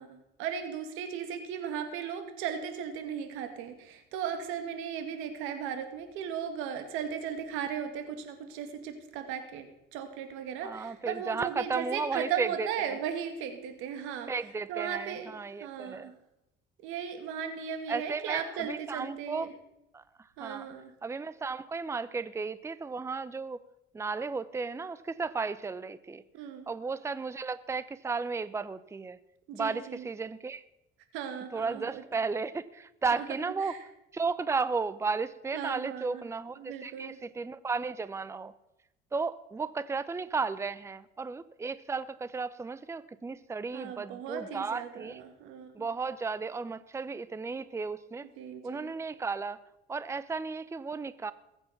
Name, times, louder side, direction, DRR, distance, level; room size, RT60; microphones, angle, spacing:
voice 1, 0.0-14.3 14.7-15.3 15.6-16.1 16.8-19.5 20.4-20.9 26.3-26.7 29.5-30.1 31.1-32.0 33.1-33.2 33.6-33.8 35.5-36.2 36.6-37.2 43.7-45.9 48.4-49.0, right 8 dB, 90° right, 8 dB, 2.2 m, -37 dB
voice 2, 10.6-13.0 14.3-16.1 17.9-19.5 19.9-20.7 21.0-23.6 23.9-26.2 26.7-29.2 29.5-30.6 31.5-33.8 34.1-38.5 39.1-45.2 45.7-48.3 48.6-49.6 49.9-51.3, right 4 dB, 15° right, 15 dB, 0.6 m, -34 dB
20.5 x 8.2 x 5.9 m, 0.89 s
cardioid pair, 105°, 20 cm